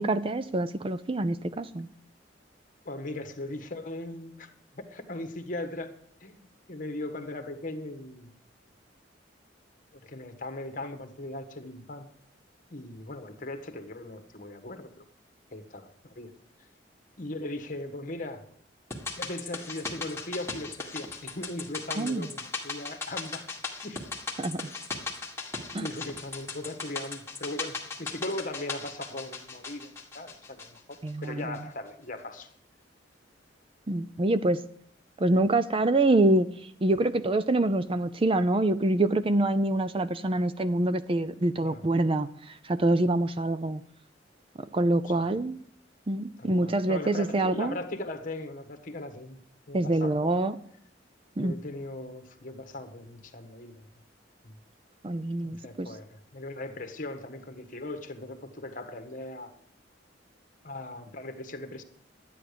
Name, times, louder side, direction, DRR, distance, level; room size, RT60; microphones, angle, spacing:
voice 1, 0.0-1.9 22.0-22.3 24.4-24.7 25.7-25.9 31.0-31.6 33.9-34.6 35.2-36.5 36.8-43.8 44.7-45.6 46.1-47.8 49.7-50.6 51.4-51.6 55.0-55.9, right 2 dB, 30° right, 13 dB, 0.5 m, -26 dB
voice 2, 2.8-5.9 6.2-6.4 6.7-8.3 9.9-12.1 12.7-15.0 15.5-16.3 17.2-18.4 19.2-23.5 23.8-24.0 25.8-32.5 41.6-41.9 46.4-49.4 49.7-50.3 51.4-53.8 54.4-54.6 55.4-59.5 60.6-61.8, left 2 dB, 45° left, 7 dB, 1.5 m, -39 dB
sound 1, 18.9-31.3 31.5-31.6, left 4 dB, 15° left, 2.0 m, -38 dB
12.5 x 9.3 x 6.8 m, 0.65 s
head